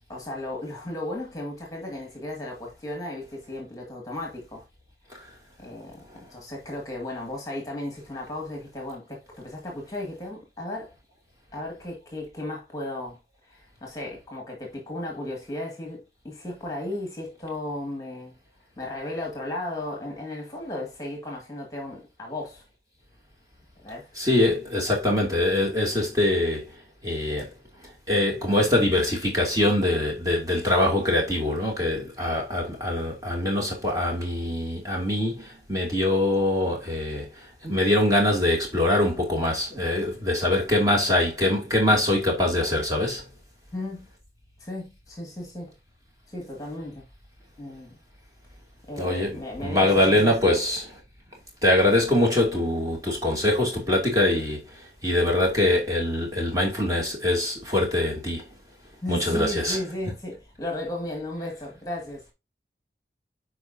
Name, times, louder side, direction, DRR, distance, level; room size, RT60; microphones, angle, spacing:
voice 1, 0.1-4.6 5.6-6.1 6.3-10.9 11.5-18.3 18.8-22.6 23.8-24.1 43.7-44.1 44.6-45.7 46.3-47.0 47.6-48.0 48.9-50.6 59.0-62.2, left 1 dB, 20° left, 2.0 m, -35 dB
voice 2, 24.2-26.7 27.0-27.5 28.1-43.2 49.0-50.8 51.6-58.4 59.1-59.8, left 1 dB, 20° right, 2.6 m, -23 dB
9.9 x 4.9 x 2.7 m
head